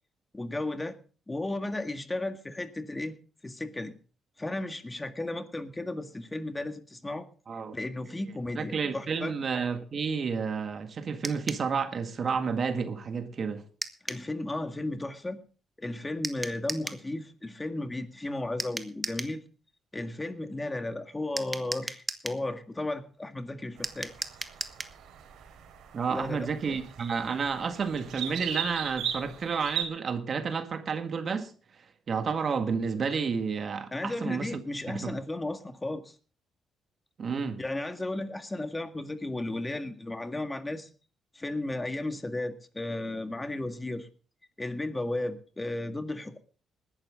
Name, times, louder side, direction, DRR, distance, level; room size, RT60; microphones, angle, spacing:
voice 1, 0.3-1.0 1.3-3.2 3.4-3.9 4.4-7.3 7.7-9.4 14.0-15.4 15.8-19.4 19.9-24.1 26.1-26.4 26.6-26.8 33.9-36.2 37.6-40.9 41.3-44.1 44.6-46.4, left 2 dB, 15° left, 1.9 m, -34 dB
voice 2, 8.6-13.6 25.9-31.5 32.1-34.5 34.9-35.1 37.2-37.6, right 5 dB, 50° right, 1.8 m, -31 dB
sound 1, 11.2-11.7 13.8-14.3 16.2-17.0 18.6-19.4 21.4-22.4 23.8-25.0, right 2 dB, 15° right, 1.4 m, -36 dB
sound 2, 23.8-29.9, right 8 dB, 80° right, 3.9 m, -38 dB
20.0 x 11.5 x 3.7 m
cardioid pair, 90°, 0 cm